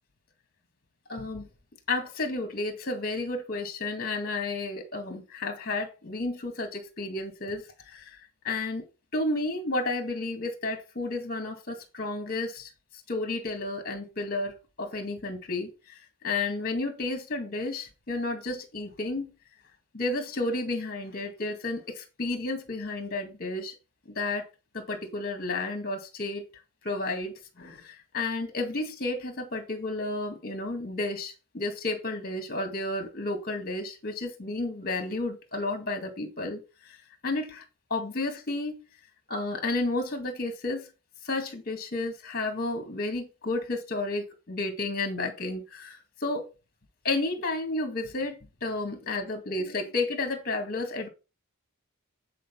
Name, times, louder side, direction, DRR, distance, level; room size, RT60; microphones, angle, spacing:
voice 1, 1.1-1.5 1.9-8.2 8.4-8.8 9.1-12.7 13.1-19.3 19.9-23.8 24.2-24.5 24.7-26.4 26.8-37.0 37.2-37.6 37.9-38.8 39.3-40.9 41.2-46.5 47.0-51.1, left 2 dB, 45° left, 1.9 m, -32 dB
9.3 x 4.6 x 5.9 m
head